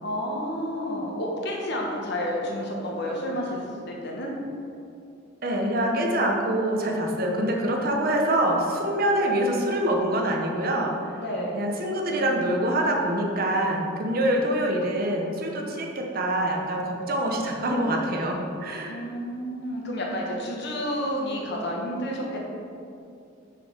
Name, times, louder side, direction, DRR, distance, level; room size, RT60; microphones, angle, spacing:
voice 1, 0.0-4.4 11.2-11.6 18.9-22.4, equal, 55° left, -2 dB, 1.3 m, -30 dB
voice 2, 5.4-11.0 11.5-19.0, right 1 dB, 50° right, 1 dB, 0.9 m, -25 dB
5.9 x 5.2 x 5.8 m, 2.5 s
head